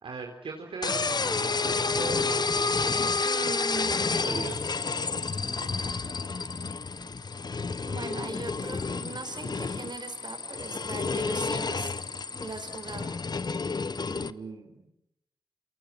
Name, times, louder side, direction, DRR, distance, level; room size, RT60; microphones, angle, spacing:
voice 1, 0.0-2.8 4.0-4.8 14.1-14.9, right 4 dB, 80° right, 1 dB, 4.1 m, -39 dB
sound 1, 0.8-14.3, left 4 dB, 50° left, 1.1 m, -30 dB
voice 2, 3.2-4.1 7.5-11.9 12.4-13.1, right 3 dB, 55° right, 7 dB, 5.9 m, -39 dB
29.0 x 28.0 x 6.0 m, 0.82 s
cardioid pair, 45°, 9 cm